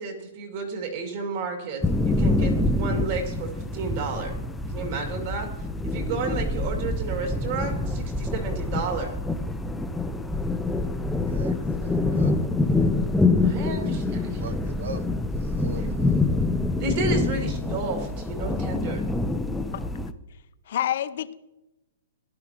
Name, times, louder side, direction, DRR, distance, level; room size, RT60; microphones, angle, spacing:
voice 1, 0.0-4.4 4.7-5.5 5.8-9.1 13.4-14.4 15.7-15.9 16.8-19.0, right 4 dB, 35° right, 3 dB, 2.3 m, -32 dB
sound 1, 1.8-20.1, left 2 dB, 5° left, 0.4 m, -26 dB
voice 2, 11.3-12.4 13.8-15.1 15.3-16.3, right 4 dB, 85° right, 11 dB, 1.0 m, -41 dB
voice 3, 20.3-21.3, left 11 dB, 50° left, 13 dB, 0.6 m, -29 dB
16.5 x 11.5 x 2.9 m, 0.96 s
hypercardioid pair, 170°, 0 cm